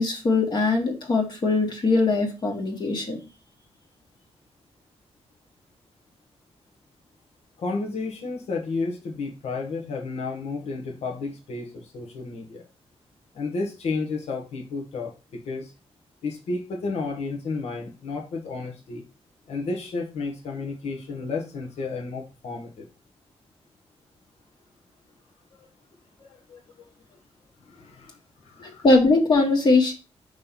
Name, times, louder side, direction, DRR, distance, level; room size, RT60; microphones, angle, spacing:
voice 1, 0.0-3.2 28.6-29.9, left 3 dB, 45° left, 0 dB, 1.4 m, -21 dB
voice 2, 7.6-12.6 13.3-15.7 16.2-19.0 19.5-22.9 25.5-25.7 26.2-26.9 27.1-27.2 27.6-28.8, left 3 dB, 80° left, 1 dB, 1.3 m, -32 dB
5.3 x 3.3 x 5.6 m, 0.30 s
wide cardioid pair, 160°, 11 cm